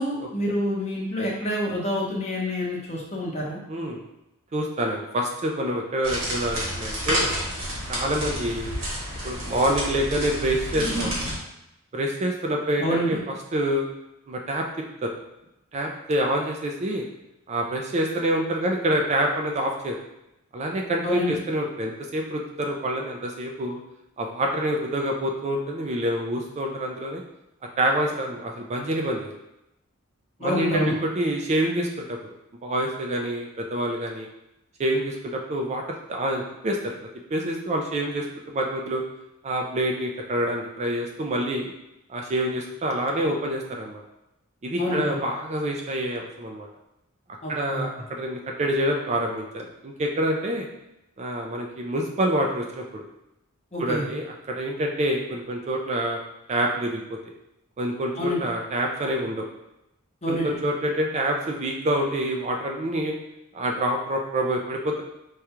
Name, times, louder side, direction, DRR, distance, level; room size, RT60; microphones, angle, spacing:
voice 1, 0.0-3.6 12.8-13.2 21.0-21.4 30.4-30.9 44.7-45.2 47.4-47.8 53.7-54.0 58.2-58.5 60.2-60.5, left 1 dB, 30° left, -4 dB, 0.9 m, -27 dB
voice 2, 3.7-4.0 4.5-7.3 7.9-8.7 9.2-11.1 11.9-13.2 13.5-13.8 14.3-14.6 15.0-15.1 15.7-17.1 17.5-20.0 20.5-23.8 24.2-27.2 27.8-29.3 30.4-32.2 32.6-34.3 34.8-37.0 37.3-39.0 39.4-41.7 42.1-44.0 44.6-46.7 47.5-50.7 51.2-53.0 53.8-56.2 56.5-57.0 57.8-59.5 60.3-63.1 63.5-65.0, right 1 dB, 30° right, 1 dB, 0.4 m, -27 dB
sound 1, 6.0-11.4, equal, 70° right, 1.3 m, -29 dB
4.8 x 2.3 x 2.9 m, 0.87 s
head